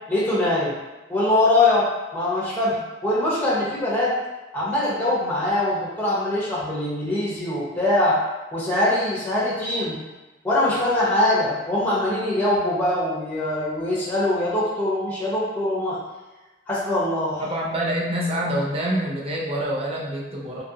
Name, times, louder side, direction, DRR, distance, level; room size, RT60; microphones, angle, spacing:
voice 1, 0.1-0.7 1.1-4.1 4.5-8.2 8.5-10.0 10.4-16.0 16.7-17.4, left 1 dB, 10° left, -7 dB, 0.8 m, -22 dB
voice 2, 17.4-20.6, right 1 dB, 35° right, -3 dB, 0.6 m, -26 dB
2.8 x 2.5 x 2.7 m, 1.1 s
head